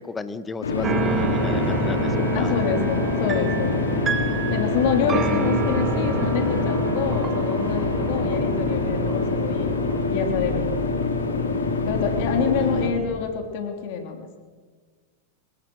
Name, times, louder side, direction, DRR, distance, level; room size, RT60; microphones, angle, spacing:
voice 1, 0.0-2.5 12.6-12.8, left 4 dB, 15° left, 13 dB, 1.4 m, -34 dB
sound 1, 0.6-12.9, left 3 dB, 90° left, 4.3 m, -25 dB
sound 2, 0.8-10.1, right 6 dB, 25° right, 2.1 m, -29 dB
voice 2, 2.3-3.9 4.5-9.8 10.1-10.8 11.9-14.2, left 6 dB, 60° left, 4 dB, 3.6 m, -27 dB
26.5 x 17.0 x 6.5 m, 1.5 s
hypercardioid pair, 110°, 0 cm